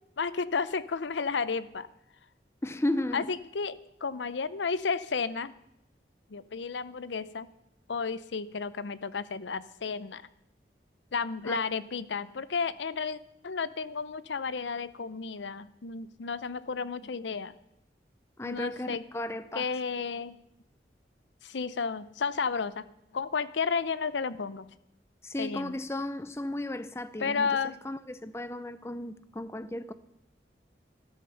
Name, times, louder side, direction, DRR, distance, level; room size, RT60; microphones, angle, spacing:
voice 1, 0.2-1.9 3.1-5.5 6.3-7.5 7.9-10.2 11.1-17.6 18.4-19.1 19.5-20.4 21.4-22.8 23.1-24.7 25.4-25.7 27.2-27.8, left 5 dB, 90° left, 0.7 m, -32 dB
voice 2, 2.6-3.3 11.4-11.6 18.4-19.7 25.2-27.5 27.8-29.9, left 1 dB, 15° left, 0.6 m, -34 dB
13.0 x 13.0 x 5.8 m
head